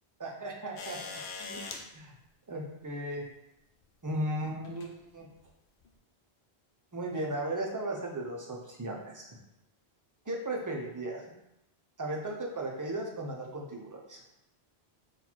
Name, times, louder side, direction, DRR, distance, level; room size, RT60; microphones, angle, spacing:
voice 1, 0.2-1.0 1.4-1.6 1.9-2.1 2.5-3.2 4.0-5.3 6.9-9.3 10.3-11.2 12.0-14.2, right 1 dB, 25° right, -2 dB, 0.5 m, -36 dB
sound 1, 0.8-1.8 3.2-3.3 4.6-4.9 5.8-5.9, left 4 dB, 60° left, 0.7 m, -41 dB
4.1 x 2.4 x 4.4 m, 0.87 s
omnidirectional pair, 1.1 m